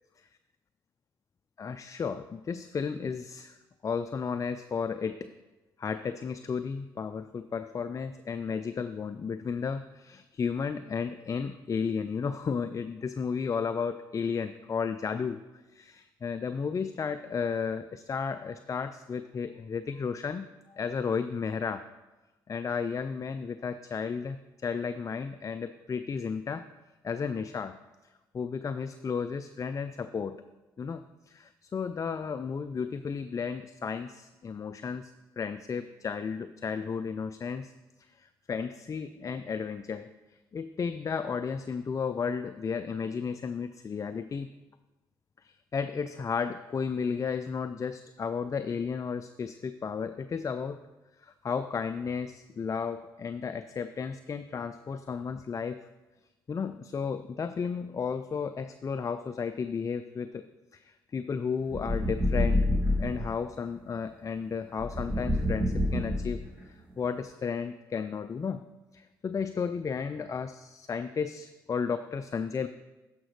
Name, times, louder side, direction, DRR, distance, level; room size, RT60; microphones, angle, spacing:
voice 1, 1.6-3.6 3.8-5.3 5.8-15.4 15.7-21.9 22.5-26.7 27.0-27.8 28.3-30.4 30.8-37.7 38.2-40.1 40.5-44.5 45.4-50.8 51.2-55.9 56.5-60.5 60.7-62.6 63.0-68.6 68.9-72.7, left 6 dB, 35° left, 10 dB, 0.3 m, -33 dB
sound 1, 61.7-63.3 64.8-66.6, left 1 dB, 20° right, 2.3 m, -27 dB
13.0 x 5.0 x 3.2 m, 1.1 s
supercardioid pair, 55°, 9 cm